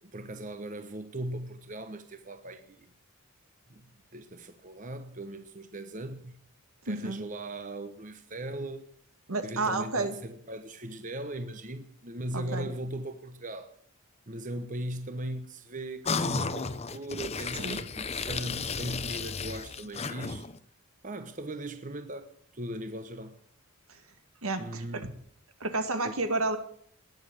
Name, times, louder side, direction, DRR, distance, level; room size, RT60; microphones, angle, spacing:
voice 1, 0.0-2.9 3.7-6.4 6.8-8.8 9.4-13.7 14.3-20.4 21.0-23.4 24.6-25.0 26.0-26.1, right 1 dB, 35° right, 1.0 m, -39 dB
voice 2, 6.9-7.2 9.3-10.1 12.3-12.7 17.5-17.8 23.9-24.0 24.4-25.1 25.6-26.6, right 2 dB, 75° right, 2.0 m, -31 dB
sound 1, 16.0-20.6, left 4 dB, 30° left, 0.8 m, -33 dB
19.5 x 7.2 x 9.0 m
head